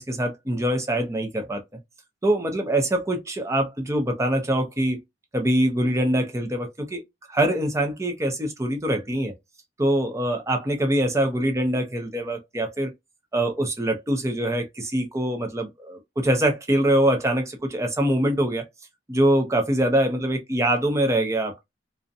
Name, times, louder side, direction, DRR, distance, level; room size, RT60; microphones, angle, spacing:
voice 1, 0.0-1.6 2.2-5.0 5.3-7.0 7.3-9.3 9.8-12.9 13.3-18.6 19.1-21.5, right 1 dB, 15° right, 0.5 m, -24 dB
2.5 x 2.1 x 2.5 m
head